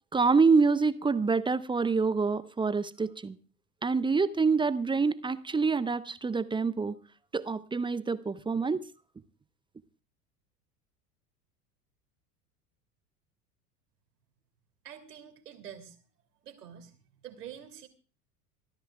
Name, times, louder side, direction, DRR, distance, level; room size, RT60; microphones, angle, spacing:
voice 1, 0.1-3.4 3.8-7.0 7.3-8.8, right 4 dB, 10° right, 0.7 m, -26 dB
voice 2, 14.8-16.0 16.4-16.9 17.2-17.9, right 9 dB, 75° right, 3.1 m, -46 dB
26.5 x 14.5 x 2.4 m
figure-of-eight pair, 80°, 48 cm